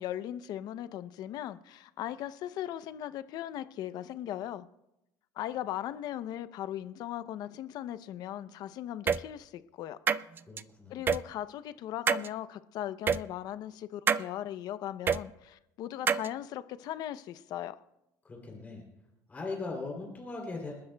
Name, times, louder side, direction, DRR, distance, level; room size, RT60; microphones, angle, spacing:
voice 1, 0.0-4.7 5.4-10.0 10.9-17.8, left 12 dB, 55° left, 0.6 m, -38 dB
sound 1, 9.1-9.2 10.1-10.6 11.1-11.2 12.1-12.3 13.1-13.2 14.1-14.2 15.1-15.2 16.1-16.3, right 7 dB, 25° right, 0.4 m, -26 dB
voice 2, 10.4-11.0 18.2-18.8 19.3-20.7, left 3 dB, 20° left, 3.0 m, -39 dB
29.5 x 12.5 x 2.2 m
cardioid pair, 145°, 8 cm